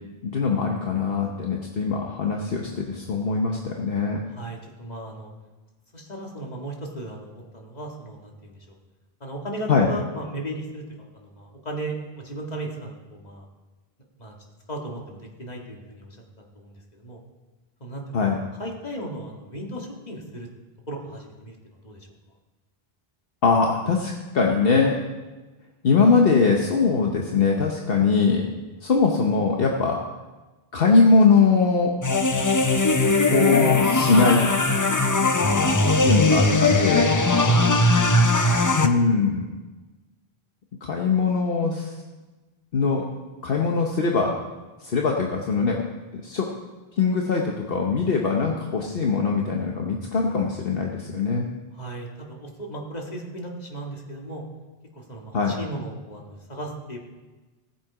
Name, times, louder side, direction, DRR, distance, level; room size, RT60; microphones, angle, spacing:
voice 1, 0.2-4.2 9.7-9.9 18.1-18.4 23.4-25.0 25.8-28.4 28.8-30.0 30.7-31.9 33.3-34.4 36.0-37.1 38.8-39.5 40.8-41.9 42.7-43.0 43.4-44.3 44.8-45.8 46.1-46.5 47.0-51.5 55.3-55.5, left 4 dB, 65° left, 0 dB, 1.2 m, -21 dB
voice 2, 4.3-5.3 5.9-8.8 9.2-13.5 14.2-14.3 14.7-17.2 17.8-18.0 18.3-20.5 20.9-22.1 35.4-36.1 37.4-37.9 51.7-54.4 54.9-57.0, right 1 dB, 40° left, 0 dB, 2.0 m, -36 dB
sound 1, 32.0-38.9, left 2 dB, 25° left, 0.5 m, -20 dB
17.0 x 7.6 x 4.9 m, 1.2 s
omnidirectional pair, 1.0 m